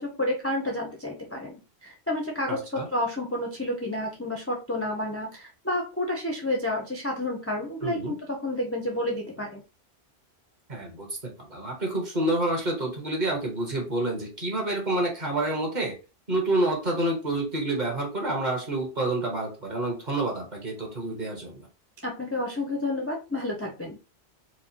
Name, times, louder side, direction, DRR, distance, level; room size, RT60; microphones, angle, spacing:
voice 1, 0.0-9.6 22.0-24.0, left 1 dB, 20° left, 0 dB, 0.4 m, -30 dB
voice 2, 2.5-2.9 7.8-8.1 10.7-15.9 16.3-21.7, right 2 dB, 45° right, 0 dB, 1.3 m, -28 dB
4.6 x 2.1 x 2.8 m, 0.31 s
omnidirectional pair, 1.1 m